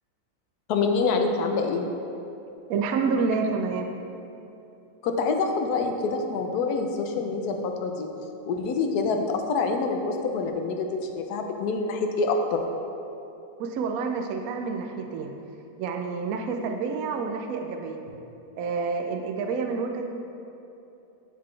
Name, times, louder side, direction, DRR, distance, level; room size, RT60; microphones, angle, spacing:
voice 1, 0.7-1.9 5.0-8.1 8.4-12.6, left 4 dB, 70° left, 4 dB, 1.1 m, -26 dB
voice 2, 2.7-3.9 13.6-15.3 15.8-18.0 18.6-20.1, right 4 dB, 70° right, 3 dB, 0.9 m, -28 dB
12.0 x 4.0 x 3.2 m, 2.8 s
omnidirectional pair, 1.8 m